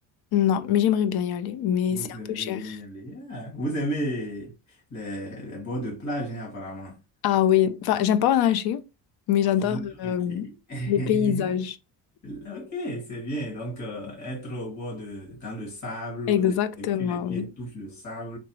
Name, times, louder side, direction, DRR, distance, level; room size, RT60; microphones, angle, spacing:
voice 1, 0.3-2.8 7.2-8.8 9.3-10.5 10.9-11.7 16.3-17.5, left 10 dB, 70° left, 0.5 m, -23 dB
voice 2, 1.9-7.0 9.6-11.5 12.2-18.4, equal, 45° left, 1.8 m, -34 dB
3.2 x 2.9 x 3.0 m
cardioid pair, 125°, 39 cm